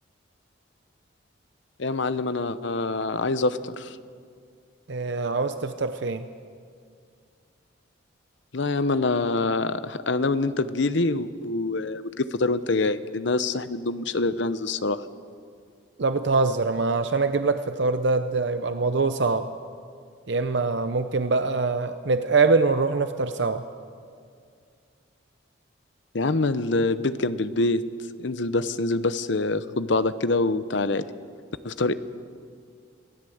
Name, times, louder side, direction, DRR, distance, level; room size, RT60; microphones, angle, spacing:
voice 1, 1.8-4.0 8.5-15.0 26.1-27.8 28.2-31.1 31.6-31.9, left 3 dB, 65° left, 13 dB, 0.8 m, -25 dB
voice 2, 4.9-6.3 16.0-19.5 20.3-23.6, right 4 dB, 60° right, 9 dB, 0.7 m, -24 dB
24.0 x 16.5 x 7.9 m, 2.2 s
head